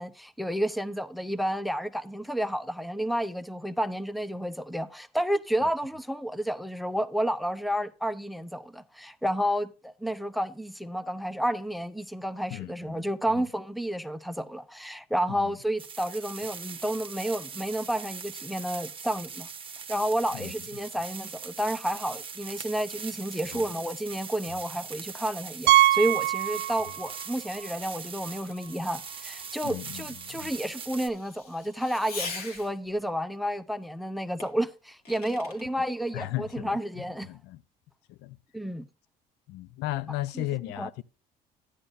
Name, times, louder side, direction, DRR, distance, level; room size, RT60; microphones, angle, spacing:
voice 1, 0.0-19.5 19.9-37.3 38.5-38.9 40.3-40.5 40.8-41.0, equal, ahead, 0.6 m, -31 dB
sound 1, 15.8-31.1, right 6 dB, 30° right, 1.0 m, -41 dB
Fireworks, 23.0-33.0 34.4-35.7, left 4 dB, 65° left, 2.4 m, -46 dB
Piano, 25.7-27.3 27.5-27.7 28.3-28.4 28.6-28.7 30.8-30.9, right 15 dB, 70° right, 0.4 m, -23 dB
voice 2, 29.6-30.5 36.1-37.6 38.1-38.4 39.5-41.0, left 16 dB, 85° left, 0.4 m, -36 dB
11.0 x 9.9 x 2.6 m
cardioid pair, 110°, 17 cm